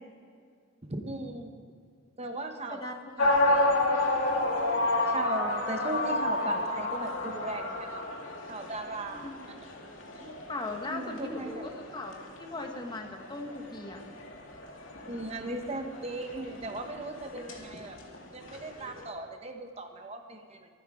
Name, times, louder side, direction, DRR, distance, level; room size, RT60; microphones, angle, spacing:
voice 1, 0.9-1.5 2.2-2.8 3.2-3.6 5.1-8.1 8.5-9.3 10.2-10.4 10.9-11.7 15.1-18.0 18.3-20.7, right 2 dB, 30° right, 5 dB, 1.0 m, -37 dB
voice 2, 2.7-3.5 9.1-9.5 10.5-14.0, left 2 dB, 20° left, 3 dB, 1.3 m, -39 dB
sound 1, 3.2-19.1, left 2 dB, 85° left, 2.4 m, -31 dB
24.0 x 9.7 x 4.9 m, 2.1 s
head